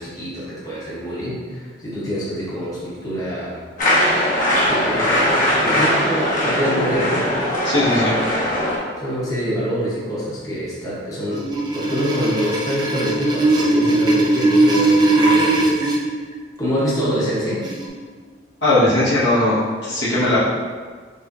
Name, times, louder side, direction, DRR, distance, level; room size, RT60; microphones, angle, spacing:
voice 1, 0.0-3.6 4.7-7.3 9.0-11.4 11.7-16.0 16.6-17.6 20.2-20.4, equal, 20° left, -7 dB, 0.9 m, -25 dB
sound 1, 3.8-8.8, equal, 45° left, 1.2 m, -20 dB
voice 2, 7.6-8.2 18.6-20.4, left 1 dB, 85° left, -9 dB, 1.4 m, -18 dB
sound 2, 11.3-16.0 17.6-17.9, right 2 dB, 25° right, 0.5 m, -18 dB
5.4 x 3.0 x 2.6 m, 1.5 s
head